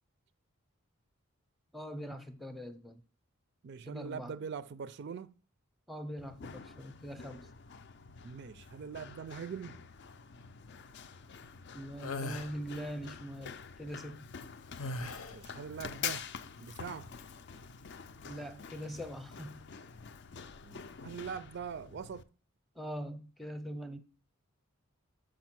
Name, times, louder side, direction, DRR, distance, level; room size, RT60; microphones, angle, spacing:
voice 1, 1.7-3.0 3.8-4.3 5.9-7.5 11.7-14.3 18.2-19.7 22.8-24.0, equal, ahead, 0.6 m, -42 dB
voice 2, 3.6-5.3 8.2-9.8 15.3-16.3 16.6-17.1 20.6-22.3, right 6 dB, 55° right, 0.4 m, -42 dB
Run, 6.2-22.2, left 7 dB, 55° left, 0.4 m, -47 dB
sound 1, 12.0-12.5 14.8-15.5, left 2 dB, 85° left, 0.7 m, -38 dB
6.3 x 5.3 x 6.0 m
head